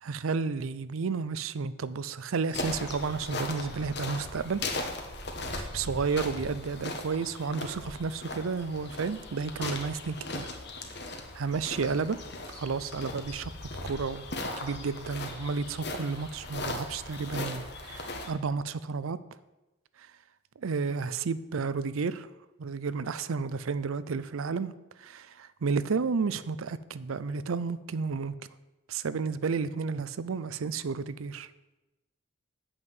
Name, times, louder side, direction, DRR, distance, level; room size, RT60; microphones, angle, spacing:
voice 1, 0.0-4.6 5.6-10.5 11.3-12.2 12.5-13.5 13.8-14.3 14.6-19.2 20.0-20.1 20.6-22.3 22.6-24.7 25.0-28.3 28.9-31.5, right 5 dB, 80° right, 16 dB, 0.5 m, -32 dB
sound 1, 2.5-18.3, left 2 dB, 55° left, 1.2 m, -38 dB
8.0 x 5.6 x 7.8 m, 1.0 s
head